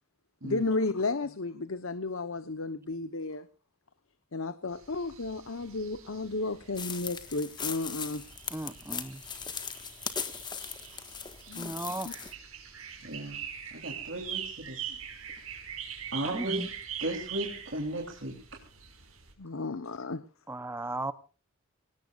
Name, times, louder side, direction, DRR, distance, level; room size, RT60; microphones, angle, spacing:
voice 1, 0.4-3.5 4.3-8.2 11.5-11.7 12.0-12.1 19.4-20.2, left 3 dB, 75° left, 13 dB, 1.0 m, -33 dB
sound 1, 4.7-19.3, right 8 dB, 85° right, 5.4 m, -43 dB
sound 2, 6.8-12.3, left 6 dB, 20° left, 1.5 m, -39 dB
voice 2, 8.5-9.2 11.6-12.1 16.2-16.7 20.5-21.1, right 2 dB, 10° right, 14 dB, 0.7 m, -36 dB
voice 3, 13.0-13.4 13.7-15.0 16.1-16.6 17.0-18.3, right 1 dB, 60° right, 1 dB, 3.3 m, -35 dB
24.5 x 18.5 x 2.5 m, 0.35 s
head